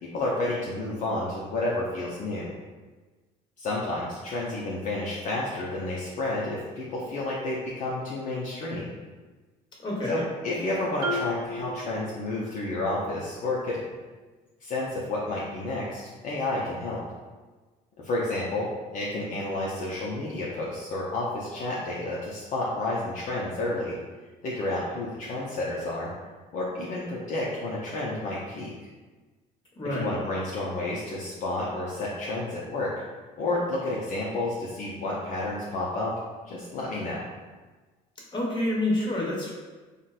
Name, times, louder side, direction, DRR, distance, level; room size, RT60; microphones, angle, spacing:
voice 1, 0.0-2.5 3.6-8.9 10.1-13.8 14.6-17.0 18.0-23.9 24.4-26.1 26.5-28.7 29.9-32.9 33.4-36.2 36.5-37.2, left 2 dB, 50° left, -5 dB, 0.6 m, -30 dB
voice 2, 9.8-10.2 29.8-30.2 38.3-39.5, left 1 dB, 30° left, -4 dB, 1.1 m, -28 dB
Marimba xylophone, 11.0-12.8, equal, 70° right, 0.6 m, -34 dB
3.8 x 2.2 x 2.4 m, 1.3 s
supercardioid pair, 90°, 16 cm